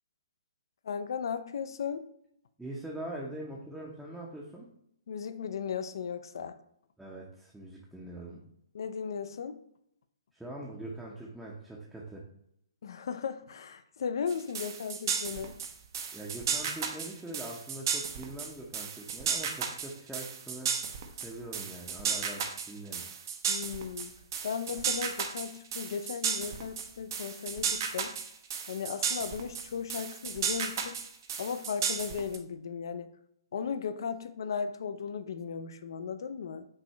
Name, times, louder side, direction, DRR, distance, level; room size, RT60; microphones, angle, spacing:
voice 1, 0.8-2.0 5.1-6.6 8.7-9.6 12.8-15.6 23.5-24.1 24.4-28.1 28.7-31.0 31.4-33.1 33.5-36.7, left 6 dB, 55° left, 11 dB, 0.4 m, -36 dB
voice 2, 2.6-4.7 7.0-8.4 10.3-12.2 16.1-20.7 21.1-23.0, right 1 dB, 5° right, -4 dB, 0.6 m, -43 dB
sound 1, 14.3-32.4, right 6 dB, 45° right, 0.6 m, -34 dB
5.4 x 2.6 x 3.2 m, 0.74 s
figure-of-eight pair, 130°, 3 cm